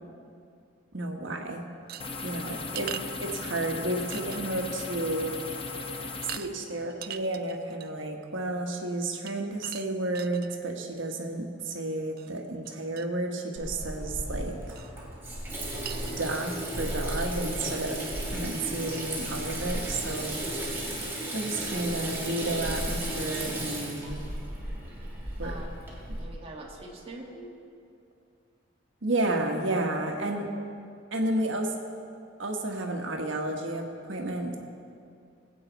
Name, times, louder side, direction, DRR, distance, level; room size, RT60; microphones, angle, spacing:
voice 1, 0.9-1.6 2.2-2.9 3.3-5.3 6.3-14.6 16.1-20.4 21.3-24.3 25.4-25.5 26.1-26.2 29.0-30.5 31.1-31.7 32.4-34.6, right 2 dB, 80° right, 2 dB, 1.4 m, -31 dB
sound 1, 1.9-3.7 4.1-4.7 5.0-5.2 5.5-5.8 6.3-6.5 6.9-8.0 9.3-10.6 12.2-12.3 12.6-12.7 13.0-13.1 14.8-14.9 15.4-15.5 15.9-16.2, right 11 dB, 50° right, 0.4 m, -41 dB
sound 2, 2.0-6.4, left 3 dB, 30° left, 0.9 m, -37 dB
Water tap faucet / Sink (filling or washing), 13.6-26.2, right 1 dB, 10° right, 2.7 m, -34 dB
voice 2, 26.2-27.5, right 2 dB, 30° right, -2 dB, 1.8 m, -43 dB
19.5 x 8.6 x 4.1 m, 2.5 s
head